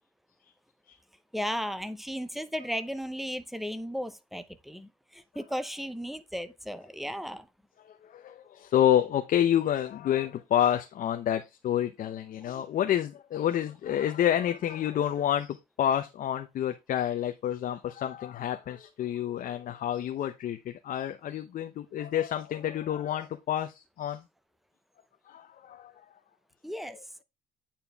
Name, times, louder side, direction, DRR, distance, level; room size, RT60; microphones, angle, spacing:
voice 1, 1.3-7.5 26.6-27.2, equal, ahead, 0.7 m, -35 dB
voice 2, 7.8-24.2 25.3-25.9, left 10 dB, 55° left, 0.7 m, -29 dB
8.8 x 4.4 x 3.4 m
cardioid pair, 110°, 17 cm